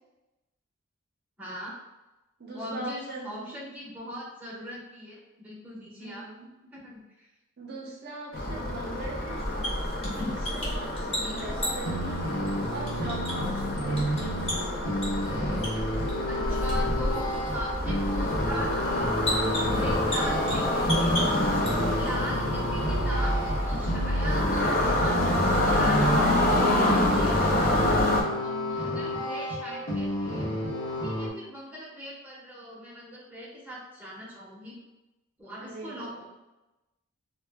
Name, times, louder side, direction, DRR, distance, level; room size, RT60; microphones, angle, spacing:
voice 1, 1.4-1.7 2.5-6.3 6.7-7.3 11.1-11.4 14.2-14.3 16.3-27.9 28.4-34.7 35.4-36.2, equal, 10° right, -6 dB, 0.6 m, -40 dB
voice 2, 2.4-3.6 6.0-6.5 7.6-9.5 10.2-14.5 16.3-17.2 35.6-36.2, right 2 dB, 50° right, -2 dB, 0.5 m, -41 dB
sound 1, 8.3-28.2, left 1 dB, 45° left, 0.4 m, -27 dB
sound 2, 9.3-22.1, equal, 30° left, 0.8 m, -35 dB
sound 3, 11.6-31.3, equal, 70° left, 0.9 m, -31 dB
2.3 x 2.1 x 3.3 m, 1.0 s
head